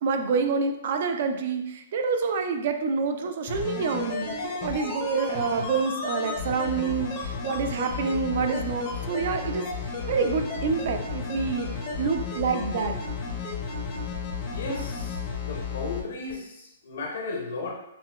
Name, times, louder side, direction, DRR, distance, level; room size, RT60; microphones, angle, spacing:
voice 1, 0.0-9.7 10.1-11.7 12.0-13.0, right 5 dB, 45° right, 6 dB, 0.4 m, -27 dB
sound 1, 3.5-16.0 16.3-16.4, left 4 dB, 25° left, 0.6 m, -33 dB
voice 2, 14.5-17.7, left 3 dB, 60° left, 0 dB, 0.7 m, -35 dB
5.5 x 2.1 x 2.3 m, 0.81 s
hypercardioid pair, 170°, 0 cm